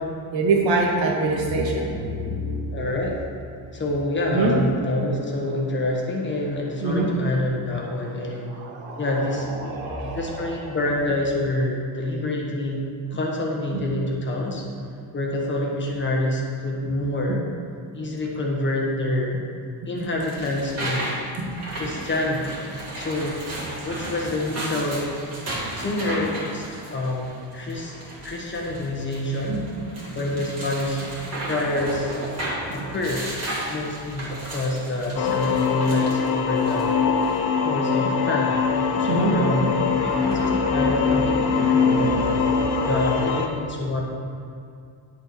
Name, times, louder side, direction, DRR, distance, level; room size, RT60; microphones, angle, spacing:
voice 1, 0.3-2.7 4.3-4.5 6.8-7.1 8.6-9.0 9.6-10.3 13.7-13.8 21.4-21.5 29.5-29.6 31.3-31.5 32.4-32.9 35.2-35.3 39.0-39.3 40.0-42.9 43.6-43.8, right 2 dB, 90° right, 0 dB, 1.9 m, -26 dB
voice 2, 2.7-3.2 3.7-8.6 9.0-9.5 10.1-14.6 15.1-17.4 17.9-19.4 19.8-21.1 21.7-22.6 23.0-23.4 23.8-25.1 25.7-27.9 28.2-29.6 30.1-31.1 31.4-32.2 32.7-33.3 33.7-37.0 37.6-38.6 39.0-42.2 42.8-44.0, left 1 dB, 25° left, -1 dB, 1.2 m, -27 dB
sound 1, 20.0-37.4, right 1 dB, 35° right, 2.3 m, -35 dB
sound 2, 35.2-43.5, left 6 dB, 65° left, 0.9 m, -23 dB
10.0 x 6.7 x 4.5 m, 2.4 s
cardioid pair, 160°, 44 cm